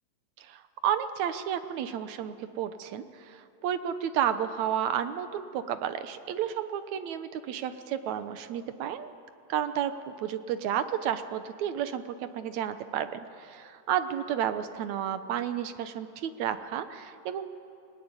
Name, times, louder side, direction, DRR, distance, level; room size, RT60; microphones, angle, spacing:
voice 1, 0.4-9.1 9.5-17.5, right 9 dB, 65° right, 10 dB, 2.1 m, -32 dB
25.5 x 20.5 x 9.9 m, 2.5 s
omnidirectional pair, 4.0 m